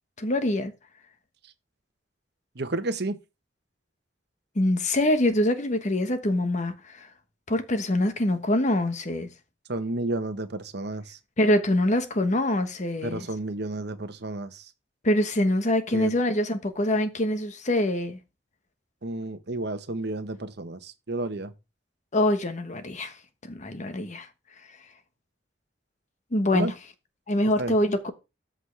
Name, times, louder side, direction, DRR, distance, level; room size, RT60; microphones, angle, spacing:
voice 1, 0.2-0.7 4.5-7.1 7.5-9.3 11.4-13.2 15.0-18.2 22.1-23.1 23.5-24.3 26.3-26.7 27.3-28.1, left 1 dB, 40° left, 1.2 m, -24 dB
voice 2, 2.5-3.2 9.7-11.2 13.0-14.7 15.9-16.1 19.0-21.5 26.5-26.7 27.6-27.7, right 2 dB, 65° right, 1.0 m, -31 dB
13.0 x 6.3 x 3.3 m
head